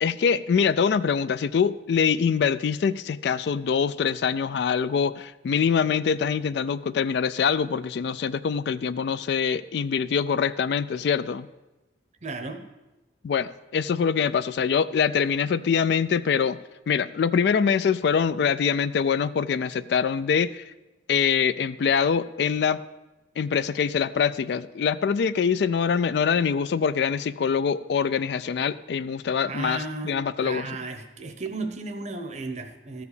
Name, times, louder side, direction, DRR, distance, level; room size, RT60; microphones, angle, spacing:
voice 1, 0.0-11.5 13.2-16.6 16.9-20.7 21.1-22.8 23.4-30.7, left 6 dB, 60° left, 15 dB, 0.3 m, -24 dB
voice 2, 12.2-12.6 29.5-30.2 30.4-33.0, right 3 dB, 35° right, 6 dB, 0.7 m, -34 dB
13.0 x 4.9 x 6.7 m, 1.0 s
head